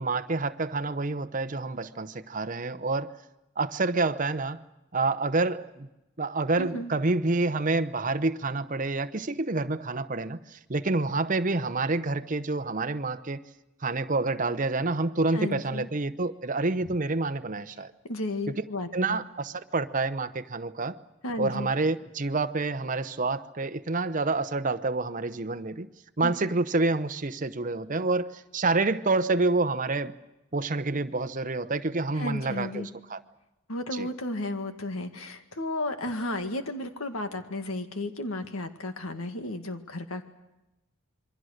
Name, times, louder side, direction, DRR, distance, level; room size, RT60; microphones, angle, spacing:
voice 1, 0.0-3.1 3.6-4.6 4.9-5.9 6.2-13.4 13.8-17.9 18.9-21.0 21.4-25.9 26.2-30.1 30.5-33.2 33.9-34.1, right 3 dB, 35° right, 10 dB, 0.9 m, -28 dB
voice 2, 6.6-6.9 15.3-15.9 16.8-16.9 18.0-19.2 21.2-21.7 26.2-26.3 32.2-32.9 33.7-40.2, left 1 dB, 75° left, 7 dB, 2.0 m, -33 dB
27.5 x 23.0 x 6.6 m, 0.96 s
head